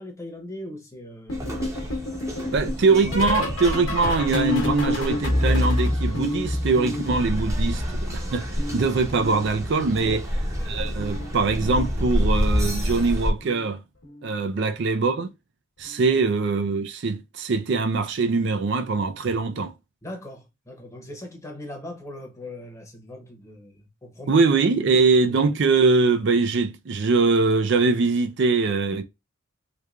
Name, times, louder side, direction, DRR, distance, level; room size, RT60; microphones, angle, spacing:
voice 1, 0.0-1.6 2.4-2.9 10.0-10.2 14.6-14.7 16.1-16.2 20.0-24.4 24.8-25.0, left 1 dB, 15° left, 0.9 m, -40 dB
sound 1, 1.3-8.1 8.3-9.9 10.9-11.3 11.5-11.9 13.4-13.7 14.0-14.3 15.8-15.9, left 1 dB, 65° left, 1.1 m, -28 dB
sound 2, 1.3-13.3, equal, 15° right, 0.8 m, -29 dB
voice 2, 2.5-10.2 10.7-13.8 14.2-15.3 15.8-19.7 24.3-29.0, right 4 dB, 55° right, 0.4 m, -22 dB
3.3 x 3.3 x 2.4 m
head